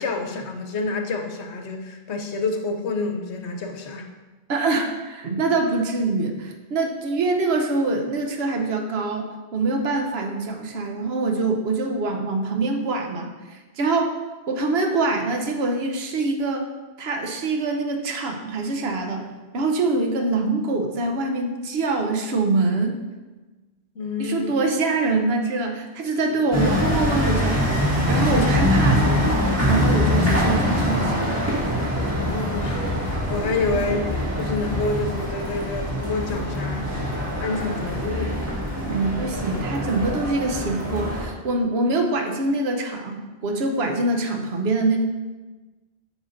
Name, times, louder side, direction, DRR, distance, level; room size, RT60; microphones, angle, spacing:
voice 1, 0.0-4.1 23.9-24.5 32.1-36.9 37.4-38.4, left 3 dB, 90° left, 5 dB, 1.0 m, -28 dB
voice 2, 4.5-14.2 14.5-16.7 17.0-19.3 19.5-23.0 24.2-29.2 29.7-31.3 38.9-45.0, right 3 dB, 75° right, 4 dB, 1.0 m, -24 dB
sound 1, 26.5-41.3, left 1 dB, 15° right, 1.6 m, -23 dB
8.1 x 5.0 x 2.5 m, 1.2 s
omnidirectional pair, 1.1 m